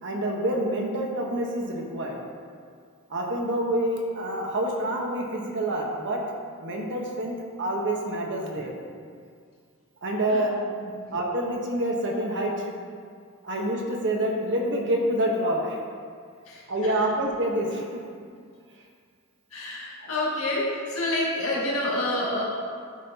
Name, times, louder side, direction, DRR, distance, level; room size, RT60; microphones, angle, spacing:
voice 1, 0.0-2.2 3.1-6.2 6.6-7.3 7.6-8.7 10.0-10.6 11.1-12.7 13.4-15.8 16.7-18.0 20.0-20.1, right 1 dB, 55° right, 0 dB, 1.2 m, -27 dB
voice 2, 16.5-17.0 19.5-22.4, left 1 dB, 70° left, -5 dB, 2.0 m, -28 dB
12.0 x 5.8 x 2.9 m, 2.1 s
head